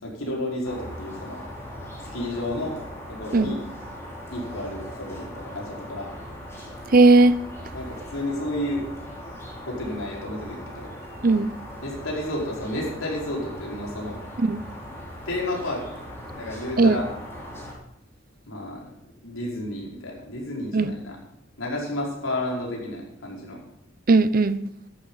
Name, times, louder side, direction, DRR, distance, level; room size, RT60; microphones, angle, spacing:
voice 1, 0.0-1.4 2.1-2.8 3.1-3.6 4.3-6.1 7.7-8.8 9.7-10.9 11.8-14.2 15.2-15.8 16.4-17.1 18.5-21.2 21.6-23.6, left 1 dB, 90° left, 5.0 m, -31 dB
sound 1, 0.6-17.7, equal, 15° left, 3.5 m, -39 dB
voice 2, 6.9-7.4 11.2-11.5 14.4-14.6 16.8-17.0 20.7-20.9 24.1-24.7, right 3 dB, 45° right, 0.7 m, -17 dB
14.0 x 11.5 x 4.0 m
head